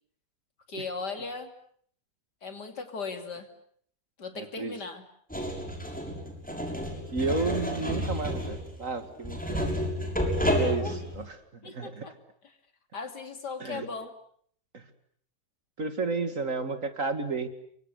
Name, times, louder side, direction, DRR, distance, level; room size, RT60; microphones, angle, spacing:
voice 1, 0.7-1.5 2.4-3.5 4.2-5.0 10.8-11.0 11.6-12.1 12.9-14.1, left 4 dB, 65° left, 8 dB, 3.4 m, -37 dB
voice 2, 4.4-4.7 7.1-9.7 10.4-11.4 11.6-12.1 13.6-13.9 14.7-14.9 15.8-17.5, right 4 dB, 45° right, 10 dB, 2.5 m, -32 dB
sound 1, 5.3-11.2, equal, 5° left, 6.4 m, -30 dB
29.0 x 24.5 x 8.3 m, 0.62 s
omnidirectional pair, 1.9 m